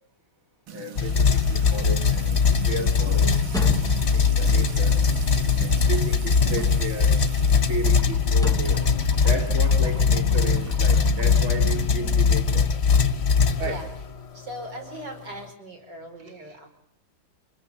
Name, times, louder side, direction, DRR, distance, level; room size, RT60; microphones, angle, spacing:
voice 1, 0.7-2.4 2.7-3.8 4.1-4.9 5.6-7.2 7.7-8.9 9.2-12.7 13.6-13.8 16.2-16.6, right 2 dB, 40° right, 2 dB, 3.4 m, -34 dB
Music / Water tap faucet / Trickle dribble, 0.7-12.4, right 8 dB, 90° right, 2.2 m, -39 dB
sound 1, 0.9-14.1, left 5 dB, 40° left, 1.3 m, -21 dB
sound 2, 3.4-4.3 6.5-7.1 8.3-8.9, equal, 5° left, 0.4 m, -36 dB
voice 2, 14.3-16.7, right 1 dB, 60° right, 3 dB, 6.0 m, -39 dB
27.5 x 21.5 x 7.3 m, 0.75 s
omnidirectional pair, 2.1 m